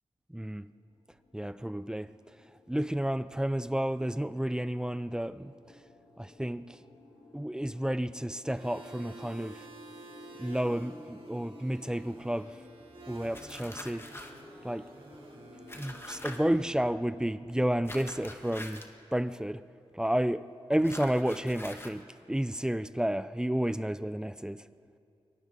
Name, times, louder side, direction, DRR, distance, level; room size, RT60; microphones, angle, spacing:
voice 1, 0.3-0.7 1.3-2.1 2.7-5.5 6.2-6.8 7.3-9.7 10.4-12.5 13.1-14.1 14.6-14.9 15.7-18.8 19.1-19.6 19.9-24.6, right 1 dB, 5° right, 0.5 m, -31 dB
sound 1, 0.6-18.7, left 2 dB, 90° left, 3.8 m, -54 dB
sound 2, 8.5-16.6, right 2 dB, 65° right, 3.7 m, -51 dB
sound 3, 13.3-14.4 15.7-16.4 17.8-18.9 20.8-22.0, left 1 dB, 25° left, 1.7 m, -44 dB
28.5 x 23.5 x 4.1 m
wide cardioid pair, 80°, 10 cm